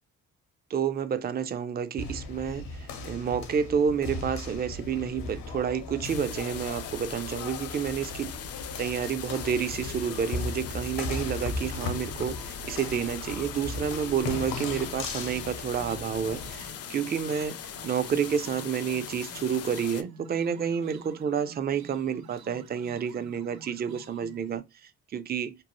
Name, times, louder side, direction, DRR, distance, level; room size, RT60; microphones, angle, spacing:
voice 1, 0.7-8.3 8.6-25.6, right 7 dB, 30° right, 0.4 m, -30 dB
sound 1, 2.0-16.6, left 3 dB, 75° left, 0.7 m, -37 dB
sound 2, 6.0-20.0, left 9 dB, 45° left, 0.4 m, -41 dB
sound 3, 8.5-24.6, right 4 dB, 85° right, 0.7 m, -52 dB
2.7 x 2.1 x 2.9 m
supercardioid pair, 55°, 35 cm